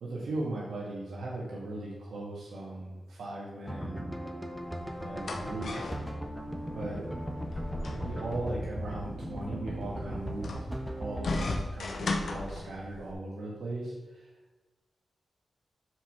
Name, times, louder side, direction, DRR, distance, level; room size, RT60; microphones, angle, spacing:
voice 1, 0.0-4.1 5.0-5.7 6.7-7.0 7.9-10.6 10.9-14.3, right 2 dB, 85° right, -5 dB, 1.9 m, -38 dB
sound 1, 3.7-11.7, equal, 5° right, 1.2 m, -37 dB
sound 2, 4.6-13.1, left 2 dB, 65° left, 1.0 m, -37 dB
6.6 x 4.8 x 6.0 m, 1.2 s
cardioid pair, 65°, 0 cm